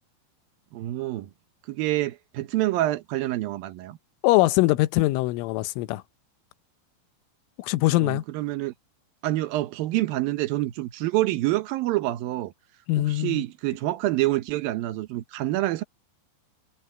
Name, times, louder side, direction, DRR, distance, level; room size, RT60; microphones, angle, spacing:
voice 1, 0.7-1.3 1.7-4.0 8.0-8.7 9.2-12.5 13.0-15.8, right 16 dB, 85° right, 2.0 m, -27 dB
voice 2, 4.2-6.0 7.6-8.2 12.9-13.4, left 18 dB, 85° left, 3.4 m, -22 dB
omnidirectional pair, 5.6 m